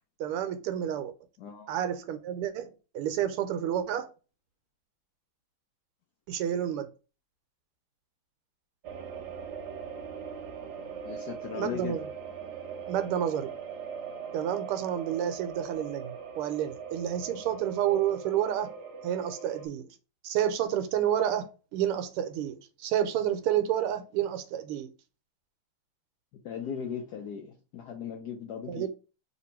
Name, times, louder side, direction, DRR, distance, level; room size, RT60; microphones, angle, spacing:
voice 1, 0.2-1.1 1.7-4.1 6.3-6.9 11.5-12.0 12.9-13.5 14.3-18.7 19.0-19.9 20.2-24.9 28.7-28.9, right 10 dB, 85° right, 1.6 m, -30 dB
voice 2, 1.4-1.7 11.0-12.0 26.4-28.9, left 7 dB, 85° left, 0.8 m, -37 dB
sound 1, 8.8-19.7, right 6 dB, 70° right, 1.0 m, -41 dB
3.4 x 2.9 x 4.3 m
omnidirectional pair, 2.4 m